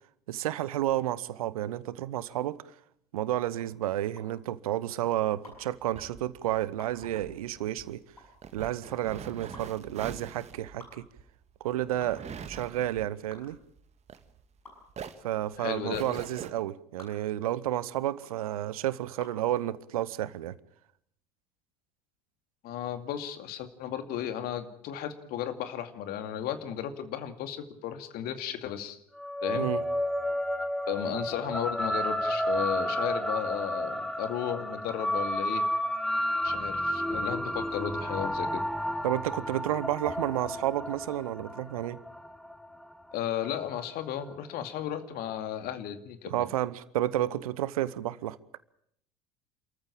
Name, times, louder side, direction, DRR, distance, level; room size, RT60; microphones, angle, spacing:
voice 1, 0.3-2.6 3.1-8.0 8.5-11.1 11.6-13.6 15.2-20.6 29.5-29.8 39.0-42.0 46.3-48.4, right 13 dB, 70° right, 0.9 m, -31 dB
sound 1, 2.2-19.5, left 2 dB, 85° left, 6.4 m, -54 dB
sound 2, 5.5-14.6 14.9-16.5, right 7 dB, 35° right, 1.9 m, -44 dB
voice 2, 15.6-16.1 22.6-29.0 29.4-29.7 30.9-35.6 36.4-38.6 43.1-46.5, left 10 dB, 55° left, 2.4 m, -34 dB
sound 3, 29.2-43.9, equal, ahead, 1.6 m, -32 dB
27.5 x 14.5 x 8.8 m
figure-of-eight pair, 65°, 19 cm